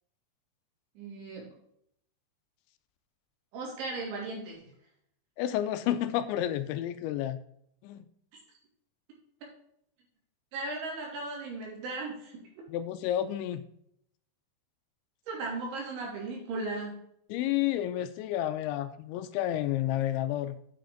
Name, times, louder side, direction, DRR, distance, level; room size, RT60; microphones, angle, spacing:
voice 1, 1.0-1.4 3.5-4.7 10.5-12.6 15.3-16.9, right 3 dB, 75° right, -2 dB, 5.3 m, -36 dB
voice 2, 5.4-7.4 7.8-8.1 12.7-13.6 17.3-20.6, left 12 dB, 85° left, 10 dB, 2.8 m, -30 dB
9.1 x 6.6 x 3.8 m, 0.71 s
omnidirectional pair, 5.4 m